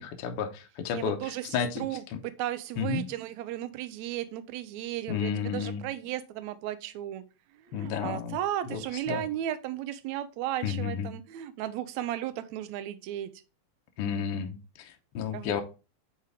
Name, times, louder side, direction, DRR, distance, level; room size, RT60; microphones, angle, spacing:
voice 1, 0.0-2.2 2.8-3.0 5.1-5.8 7.7-8.4 8.7-8.8 9.1-9.2 10.6-11.1 14.0-15.6, left 7 dB, 65° left, 1.5 m, -32 dB
voice 2, 0.9-7.2 7.6-13.3 15.3-15.6, right 12 dB, 80° right, 2.0 m, -35 dB
9.5 x 4.5 x 3.4 m
omnidirectional pair, 3.3 m